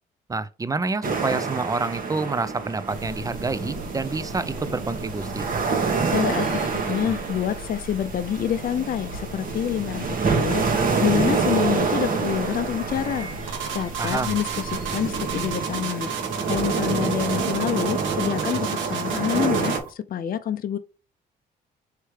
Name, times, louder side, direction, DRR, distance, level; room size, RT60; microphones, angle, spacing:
voice 1, 0.3-5.5 14.0-14.3, right 3 dB, 15° right, 0.5 m, -28 dB
sound 1, 1.0-19.8, right 4 dB, 45° right, 1.1 m, -27 dB
sound 2, 2.9-15.5, equal, 85° right, 1.8 m, -39 dB
voice 2, 6.1-6.5 6.9-16.1 16.4-20.8, left 9 dB, 45° left, 0.5 m, -27 dB
sound 3, 13.5-19.9, right 8 dB, 70° right, 0.9 m, -32 dB
3.3 x 3.2 x 4.7 m
supercardioid pair, 60°, 20 cm